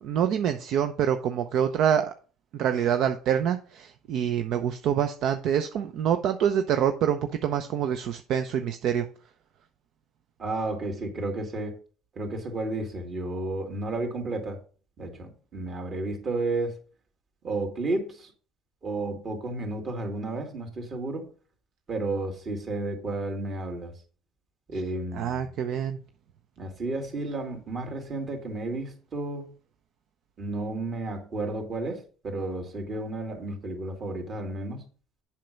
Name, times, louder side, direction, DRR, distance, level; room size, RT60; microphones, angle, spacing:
voice 1, 0.0-2.1 2.5-9.1 25.1-26.0, right 9 dB, 65° right, 8 dB, 0.7 m, -26 dB
voice 2, 10.4-11.8 12.2-14.6 15.0-16.8 17.4-18.3 18.8-21.2 21.9-23.9 24.7-25.5 26.6-29.5 30.4-34.8, right 2 dB, 45° right, 3 dB, 2.9 m, -32 dB
7.5 x 5.8 x 5.2 m, 0.39 s
supercardioid pair, 95°, 0 cm